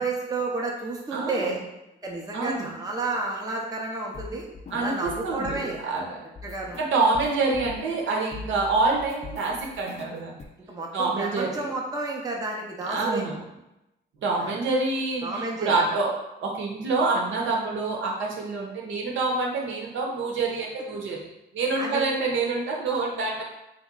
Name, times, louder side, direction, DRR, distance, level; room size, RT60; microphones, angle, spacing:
voice 1, 0.0-1.6 2.0-4.5 4.8-5.9 6.4-6.8 10.7-13.2 14.3-14.6 15.2-15.8 21.8-22.0, right 3 dB, 20° right, -1 dB, 0.6 m, -31 dB
voice 2, 1.1-1.6 2.3-2.7 4.7-6.2 6.8-10.4 10.9-11.6 12.9-13.4 14.2-16.1 16.4-21.2 21.5-23.4, right 3 dB, 75° right, -1 dB, 0.8 m, -26 dB
sound 1, 3.9-5.9 6.4-8.1 8.3-10.5, left 5 dB, 35° left, 0.5 m, -42 dB
3.0 x 2.1 x 3.6 m, 0.92 s
cardioid pair, 90°, 20 cm